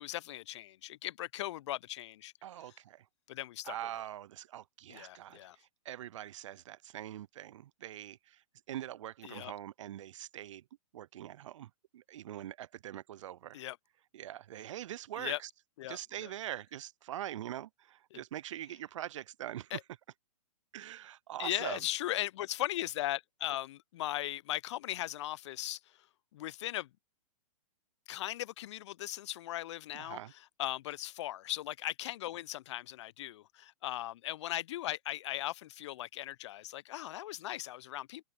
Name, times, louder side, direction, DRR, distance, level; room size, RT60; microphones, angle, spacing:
voice 1, 0.0-2.3 3.3-3.8 4.9-5.6 9.2-9.5 13.5-13.8 15.2-15.4 15.8-16.3 18.1-18.2 19.7-19.8 21.4-25.8 26.3-26.9 28.1-30.2 30.6-38.2, left 14 dB, 50° left, 0.8 m, -38 dB
voice 2, 2.4-3.0 3.6-5.4 5.9-8.2 8.7-10.6 10.9-13.6 14.1-15.5 15.9-19.8 20.7-21.8 29.9-30.3, right 12 dB, 55° right, 0.6 m, -43 dB
figure-of-eight pair, 115°, 19 cm